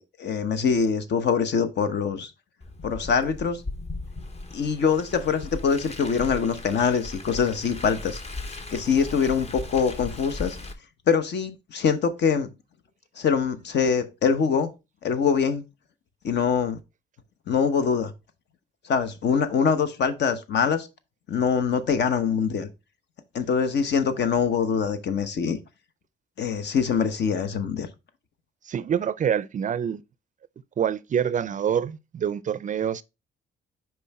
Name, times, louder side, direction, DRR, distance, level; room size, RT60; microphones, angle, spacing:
voice 1, 0.0-2.3 2.8-3.6 4.5-8.2 8.7-10.6 11.1-12.5 13.2-14.7 15.0-15.6 16.2-16.8 17.5-18.1 18.8-20.9 21.3-22.7 23.3-25.6 26.4-27.9, left 6 dB, 60° left, 1.0 m, -24 dB
Car, 2.6-10.7, left 2 dB, 30° left, 1.1 m, -37 dB
voice 2, 28.7-30.0 30.8-33.0, right 8 dB, 40° right, 0.4 m, -26 dB
5.5 x 4.6 x 4.1 m
cardioid pair, 90°, 20 cm